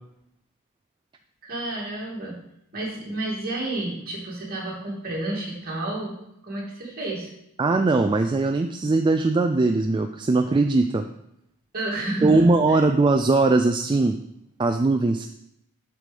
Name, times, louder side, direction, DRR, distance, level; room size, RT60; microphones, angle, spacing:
voice 1, 1.4-2.4 2.7-6.2 6.4-7.3 11.7-12.8, right 2 dB, 45° right, -4 dB, 2.6 m, -30 dB
voice 2, 7.6-11.1 12.2-14.2 14.6-15.3, right 3 dB, 20° right, 6 dB, 0.3 m, -20 dB
7.6 x 4.9 x 5.2 m, 0.79 s
head